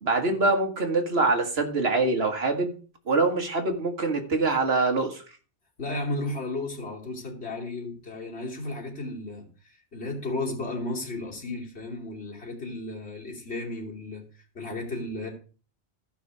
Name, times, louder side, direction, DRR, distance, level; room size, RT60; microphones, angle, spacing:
voice 1, 0.0-2.7 3.1-5.2, right 3 dB, 70° right, 2.0 m, -24 dB
voice 2, 5.8-15.3, left 2 dB, 75° left, 3.1 m, -34 dB
14.0 x 5.8 x 4.8 m
omnidirectional pair, 1.1 m